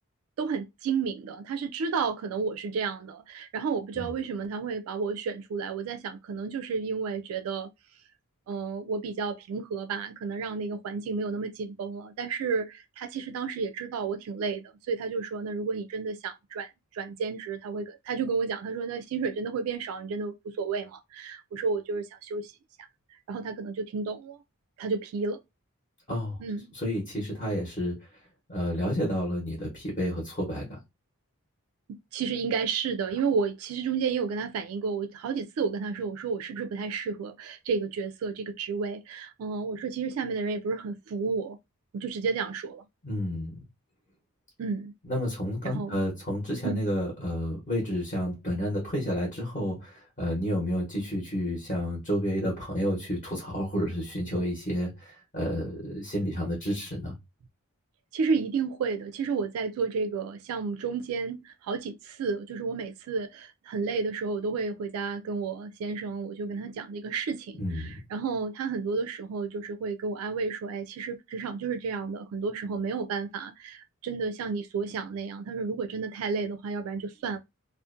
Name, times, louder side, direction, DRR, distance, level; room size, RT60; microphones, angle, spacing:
voice 1, 0.4-7.7 8.5-22.5 23.3-24.4 24.8-25.4 26.4-26.7 32.1-41.6 41.9-42.8 44.6-44.9 45.6-46.0 46.6-46.8 58.1-77.4, right 5 dB, 75° right, 0.3 m, -31 dB
voice 2, 26.7-28.1 28.5-30.8 43.0-43.6 45.1-57.1 67.6-67.9, equal, 35° left, 0.8 m, -30 dB
2.5 x 2.1 x 2.4 m
head